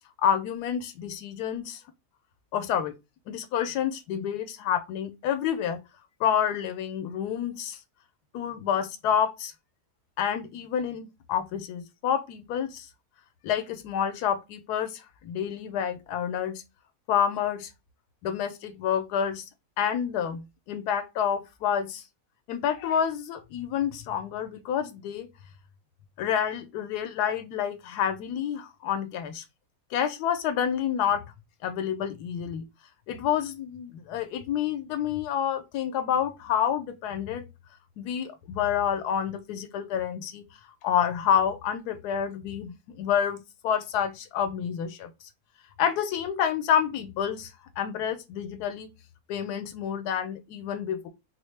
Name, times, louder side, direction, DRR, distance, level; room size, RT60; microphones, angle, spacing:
voice 1, 0.2-1.8 2.5-2.9 3.3-5.8 6.2-7.8 8.3-9.5 10.2-12.9 13.4-16.6 17.1-17.7 18.2-19.5 19.8-22.0 22.5-25.3 26.2-29.4 29.9-31.2 31.6-32.6 33.1-37.4 38.0-40.4 40.8-45.1 45.8-47.5 47.8-48.9 49.3-51.1, left 9 dB, 90° left, 1.2 m, -28 dB
4.3 x 2.1 x 3.2 m
omnidirectional pair, 1.6 m